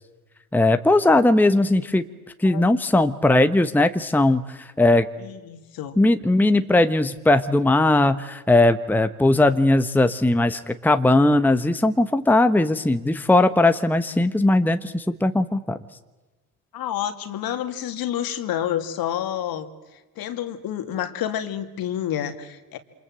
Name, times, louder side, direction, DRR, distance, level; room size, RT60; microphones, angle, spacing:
voice 1, 0.5-2.0 2.4-5.1 6.0-15.8, left 2 dB, 5° left, 10 dB, 1.2 m, -19 dB
voice 2, 2.4-2.8 5.2-6.0 16.7-19.7 20.2-22.8, left 10 dB, 50° left, 9 dB, 2.7 m, -29 dB
28.0 x 26.5 x 7.8 m, 1.2 s
hypercardioid pair, 75°, 45 cm